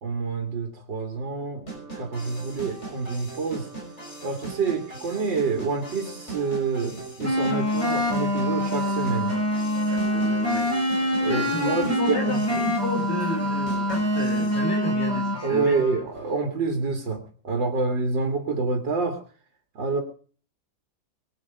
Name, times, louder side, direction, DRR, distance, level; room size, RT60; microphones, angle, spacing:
voice 1, 0.0-3.7 4.2-9.4 11.2-12.4 15.4-19.2 19.7-20.0, right 4 dB, 75° right, 3 dB, 2.9 m, -27 dB
sound 1, 1.7-14.6, right 3 dB, 35° left, 6.5 m, -39 dB
sound 2, 7.2-16.0, left 1 dB, 5° left, 6.4 m, -25 dB
voice 2, 9.9-10.7 11.2-16.0, left 1 dB, 70° left, 2 dB, 4.6 m, -32 dB
24.0 x 8.3 x 5.2 m, 0.43 s
omnidirectional pair, 2.0 m